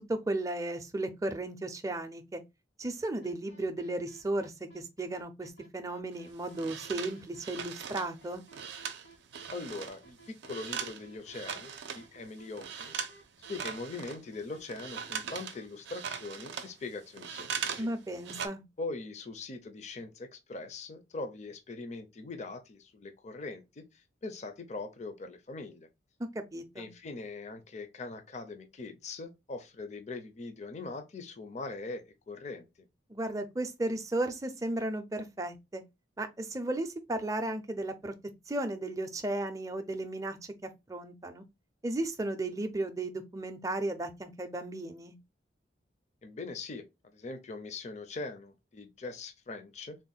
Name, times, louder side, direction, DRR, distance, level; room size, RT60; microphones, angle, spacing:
voice 1, 0.1-2.4 2.8-8.4 17.8-18.6 26.3-26.9 33.1-35.8 36.2-38.1 38.5-40.4 40.9-41.4 41.8-45.2, right 2 dB, 20° right, 0.4 m, -35 dB
sound 1, 3.2-15.7, right 3 dB, 80° left, 1.4 m, -56 dB
sound 2, 6.1-10.0 10.2-12.1 12.5-13.2 13.4-17.9 18.1-18.5, right 7 dB, 70° right, 0.5 m, -39 dB
voice 2, 9.5-13.1 13.5-17.9 18.8-25.9 26.8-32.7 46.2-50.0, left 3 dB, 40° left, 0.5 m, -42 dB
3.6 x 2.2 x 3.9 m
head